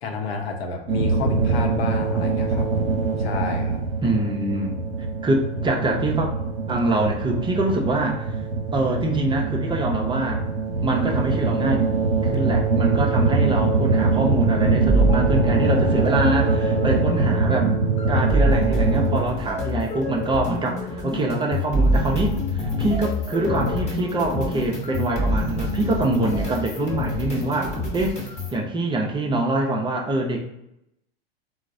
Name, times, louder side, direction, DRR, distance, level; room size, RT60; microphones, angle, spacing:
voice 1, 0.0-2.9 3.2-3.8, left 3 dB, 75° left, 3 dB, 0.8 m, -30 dB
sound 1, 0.9-19.2, right 4 dB, 55° right, 0.7 m, -23 dB
voice 2, 4.0-4.8 5.2-6.3 6.7-8.3 8.7-10.4 10.8-11.8 12.2-17.7 18.1-28.2 28.5-30.4, right 2 dB, 15° right, 0 dB, 0.5 m, -24 dB
sound 2, 14.9-28.6, equal, 20° left, 1.2 m, -26 dB
3.9 x 2.0 x 2.5 m, 0.84 s
hypercardioid pair, 95°, 31 cm